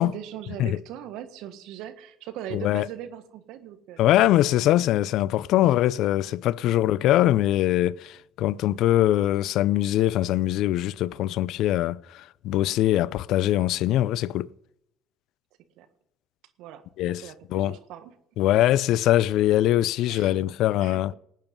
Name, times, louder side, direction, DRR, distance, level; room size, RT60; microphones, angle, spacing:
voice 1, 0.0-4.1 4.9-5.0 6.6-6.8 15.8-15.9 16.6-18.1 20.1-20.4 20.8-21.2, right 11 dB, 70° right, 1.6 m, -40 dB
voice 2, 2.5-2.9 4.0-14.5 17.0-17.2 17.5-17.8 18.4-21.1, left 14 dB, 65° left, 0.4 m, -22 dB
19.5 x 9.2 x 5.4 m
hypercardioid pair, 65°, 0 cm